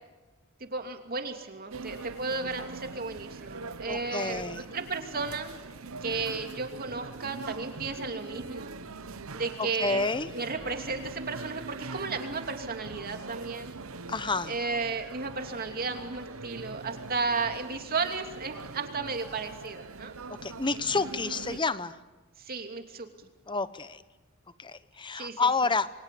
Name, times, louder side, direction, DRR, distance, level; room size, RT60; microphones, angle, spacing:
voice 1, 0.6-5.5 6.0-8.7 9.3-10.1 10.3-13.7 14.5-20.1 21.5-21.6 22.4-23.3 25.1-25.5, right 4 dB, 45° right, 5 dB, 2.8 m, -34 dB
sound 1, 1.7-21.6, right 3 dB, 70° right, 1.0 m, -42 dB
voice 2, 3.8-4.6 9.6-10.3 14.1-14.5 20.4-22.0 23.5-24.0 24.6-25.9, left 4 dB, 20° left, 14 dB, 1.0 m, -29 dB
28.5 x 23.0 x 8.5 m, 1.2 s
head